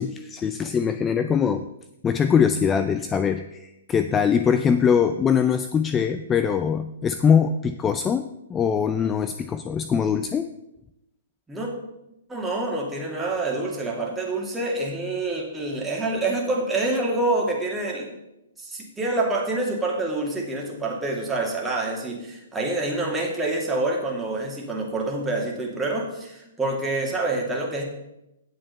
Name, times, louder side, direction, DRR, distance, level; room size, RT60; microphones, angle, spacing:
voice 1, 0.0-1.7 2.0-10.5, left 7 dB, 20° left, 10 dB, 0.4 m, -22 dB
voice 2, 12.3-18.1 18.6-27.8, right 2 dB, 10° right, -2 dB, 2.3 m, -27 dB
9.3 x 7.5 x 5.5 m, 0.89 s
hypercardioid pair, 125°, 0 cm